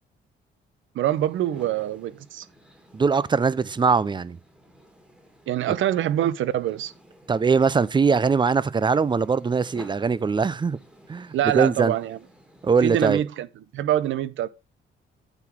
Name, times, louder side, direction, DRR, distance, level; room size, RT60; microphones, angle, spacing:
voice 1, 0.9-2.5 5.5-6.9 11.3-12.2 12.8-13.5 13.7-14.5, right 12 dB, 75° right, 0.8 m, -25 dB
sound 1, 1.1-12.8, right 1 dB, 5° right, 2.0 m, -52 dB
voice 2, 2.9-4.4 5.7-5.8 7.3-10.8 11.1-11.9 12.6-13.2, right 5 dB, 25° right, 0.5 m, -21 dB
9.0 x 4.0 x 6.0 m
cardioid pair, 90°, 20 cm